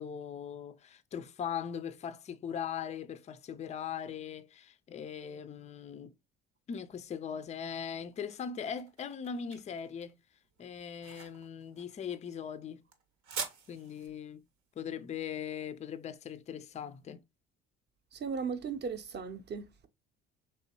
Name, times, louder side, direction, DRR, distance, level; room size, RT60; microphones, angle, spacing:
voice 1, 0.0-6.1 6.7-10.2 10.6-12.8 13.7-14.4 14.8-17.2, left 7 dB, 25° left, 0.3 m, -40 dB
sound 1, 7.8-16.8, right 6 dB, 75° right, 0.8 m, -47 dB
voice 2, 18.1-19.9, right 5 dB, 35° right, 0.6 m, -37 dB
3.3 x 2.8 x 2.8 m
hypercardioid pair, 65°, 31 cm